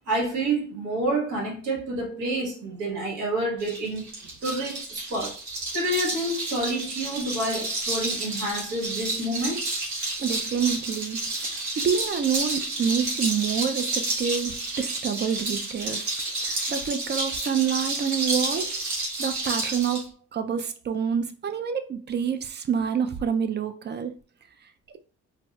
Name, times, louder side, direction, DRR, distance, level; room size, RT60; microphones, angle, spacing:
voice 1, 0.0-4.1 4.4-5.4 5.7-9.7, right 1 dB, 90° right, 1.4 m, -28 dB
sound 1, 3.6-20.0, right 2 dB, 75° right, 1.6 m, -30 dB
voice 2, 10.2-16.1 16.4-18.8 19.2-24.1, right 7 dB, 35° right, 0.4 m, -27 dB
4.1 x 2.1 x 2.3 m
cardioid pair, 90°, 30 cm